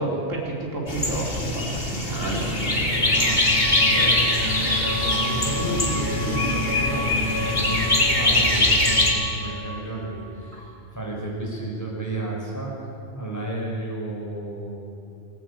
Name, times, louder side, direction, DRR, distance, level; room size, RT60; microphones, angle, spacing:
voice 1, 0.0-3.6, right 2 dB, 75° right, -3 dB, 4.7 m, -30 dB
sound 1, 0.9-9.1, left 2 dB, 45° left, 3.2 m, -22 dB
sound 2, 2.4-11.3, equal, 10° right, 2.7 m, -33 dB
voice 2, 3.8-14.8, right 1 dB, 15° left, -4 dB, 5.9 m, -32 dB
19.5 x 17.5 x 8.6 m, 2.7 s
omnidirectional pair, 1.3 m